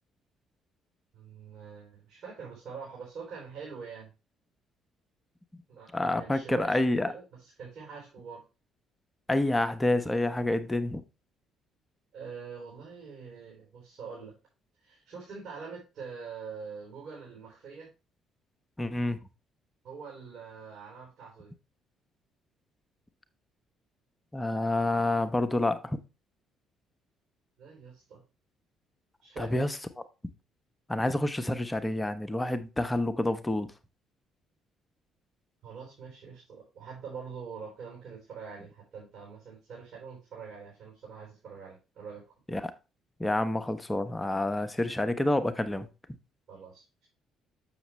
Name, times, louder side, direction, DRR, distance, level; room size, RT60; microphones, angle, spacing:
voice 1, 1.1-4.1 5.7-6.8 7.0-8.4 12.1-14.3 14.8-17.9 19.8-21.5 27.6-28.2 29.2-29.6 35.6-42.2 46.5-47.1, right 5 dB, 60° right, 3.8 m, -44 dB
voice 2, 5.9-7.1 9.3-11.0 18.8-19.2 24.3-26.0 29.4-29.7 30.9-33.7 42.5-42.7 43.2-45.9, left 1 dB, 15° left, 0.9 m, -28 dB
7.0 x 6.7 x 3.1 m
figure-of-eight pair, 45°, 0 cm